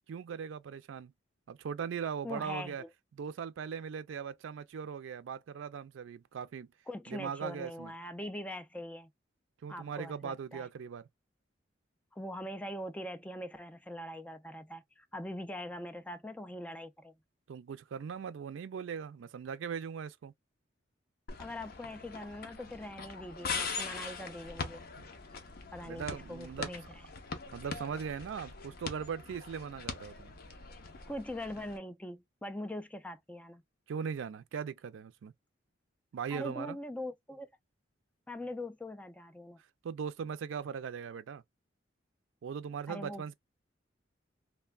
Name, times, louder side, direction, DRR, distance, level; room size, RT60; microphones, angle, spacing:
voice 1, 0.1-1.1 1.5-2.8 3.2-6.7 7.1-7.9 9.6-11.0 17.5-20.3 25.0-25.1 25.8-26.7 27.5-30.3 33.9-35.3 36.1-36.8 39.8-41.4 42.4-43.3, right 7 dB, 90° right, 0.4 m, -39 dB
voice 2, 2.2-2.9 6.9-9.1 9.7-10.7 12.1-17.1 21.4-24.8 25.7-27.0 31.1-33.6 36.3-37.5 38.3-39.6 42.9-43.3, left 1 dB, 5° left, 0.3 m, -42 dB
sound 1, 21.3-31.8, left 4 dB, 55° left, 0.6 m, -42 dB
3.1 x 2.1 x 2.2 m
head